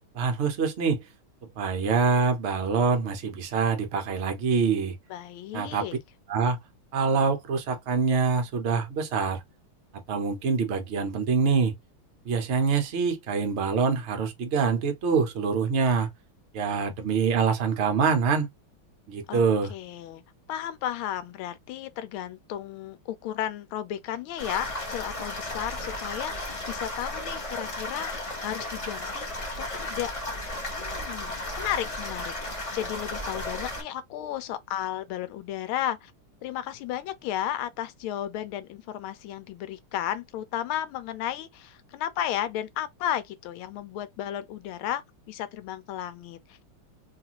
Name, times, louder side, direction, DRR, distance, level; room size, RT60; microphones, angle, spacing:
voice 1, 0.1-1.0 1.6-5.0 5.5-5.9 6.3-6.6 6.9-9.4 10.1-11.7 12.2-16.1 16.5-18.5 19.1-19.7, right 5 dB, 65° right, 0.6 m, -25 dB
voice 2, 5.1-6.0 19.3-19.4 19.7-20.2 20.5-29.3 29.6-30.1 30.7-36.1 36.4-46.6, left 11 dB, 80° left, 1.4 m, -34 dB
sound 1, 24.4-33.8, left 1 dB, 40° left, 0.5 m, -34 dB
3.3 x 2.4 x 2.8 m
omnidirectional pair, 2.3 m